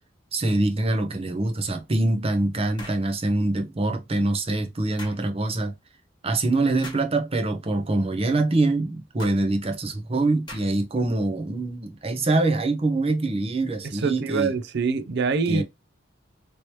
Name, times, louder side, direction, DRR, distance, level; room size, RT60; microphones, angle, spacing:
voice 1, 0.3-5.7 6.2-14.5 15.5-15.6, right 2 dB, 30° right, 0.7 m, -24 dB
sound 1, 2.8-3.1 5.0-5.2 6.8-7.1 9.2-9.4 10.5-10.9, left 1 dB, 25° left, 1.3 m, -41 dB
voice 2, 13.9-15.6, right 4 dB, 60° right, 0.5 m, -24 dB
3.1 x 3.0 x 2.9 m
head